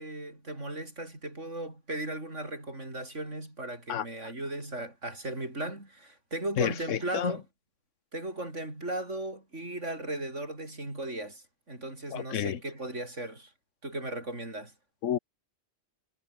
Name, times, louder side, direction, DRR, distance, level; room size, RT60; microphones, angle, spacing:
voice 1, 0.0-7.4 8.1-13.5 13.8-14.7, right 1 dB, 75° right, 7.3 m, -37 dB
voice 2, 6.6-7.3 12.1-12.6 15.0-15.2, left 10 dB, 85° left, 1.2 m, -30 dB
omnidirectional pair, 1.3 m